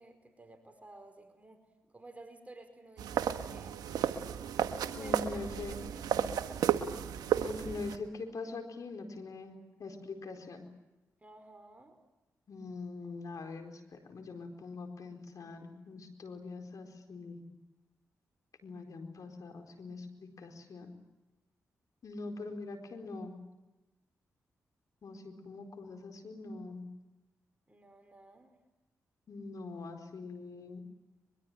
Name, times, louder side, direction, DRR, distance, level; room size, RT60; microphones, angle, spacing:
voice 1, 0.0-3.9 4.8-5.4 5.7-6.7 11.2-12.0 27.7-28.6, right 2 dB, 20° right, 7 dB, 4.9 m, -54 dB
sound 1, 3.0-8.0, right 9 dB, 80° right, 1.3 m, -33 dB
voice 2, 5.0-5.8 7.4-10.7 12.5-17.4 18.6-20.9 22.0-23.3 25.0-26.8 29.3-30.8, left 3 dB, 65° left, 4 dB, 4.4 m, -43 dB
23.0 x 22.5 x 9.1 m, 1.1 s
supercardioid pair, 45°, 6 cm